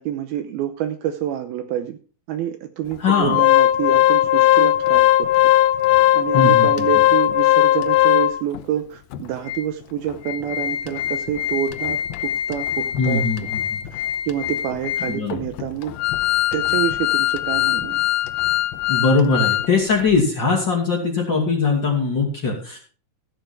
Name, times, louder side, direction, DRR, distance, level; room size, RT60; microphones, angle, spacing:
voice 1, 0.0-2.0 2.3-5.3 6.1-13.2 13.9-15.9 16.5-18.0, right 10 dB, 75° right, 9 dB, 2.4 m, -27 dB
voice 2, 3.0-3.4 6.3-6.7 13.0-13.9 15.1-15.4 18.9-22.8, left 4 dB, 35° left, -2 dB, 2.4 m, -21 dB
Organ, 3.1-8.6 9.1-9.2 9.5-9.6 10.1-19.7 20.0-20.1, left 13 dB, 80° left, 2.4 m, -19 dB
14.5 x 9.0 x 4.4 m, 0.38 s
omnidirectional pair, 4.9 m